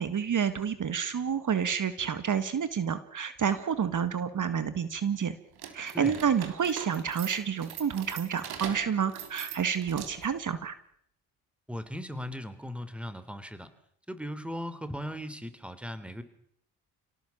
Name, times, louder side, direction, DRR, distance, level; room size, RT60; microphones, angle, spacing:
voice 1, 0.0-5.4 5.7-10.8, right 7 dB, 50° right, 12 dB, 2.0 m, -29 dB
sound 1, 5.5-10.4, right 8 dB, 70° right, 3.6 m, -42 dB
voice 2, 11.7-13.7 14.1-16.2, equal, 5° right, 12 dB, 3.6 m, -38 dB
29.5 x 18.0 x 7.3 m, 0.68 s
hypercardioid pair, 50°, 39 cm